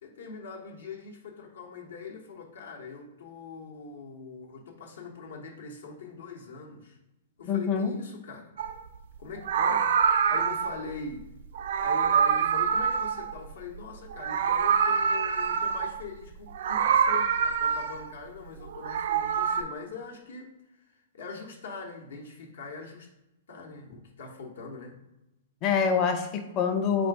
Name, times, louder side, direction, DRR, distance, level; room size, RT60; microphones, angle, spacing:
voice 1, 0.0-7.0 7.4-8.5 9.2-11.2 11.8-20.5 20.9-23.1 23.5-25.0, left 4 dB, 80° left, 0 dB, 0.9 m, -42 dB
voice 2, 7.4-8.0 25.6-27.1, left 6 dB, 30° left, 6 dB, 0.5 m, -26 dB
Meow, 8.6-8.8 9.4-10.8 11.5-13.8 14.1-16.0 16.5-18.1 18.7-19.6, right 7 dB, 65° right, 0.3 m, -25 dB
4.2 x 2.5 x 4.6 m, 0.94 s
hypercardioid pair, 150°, 0 cm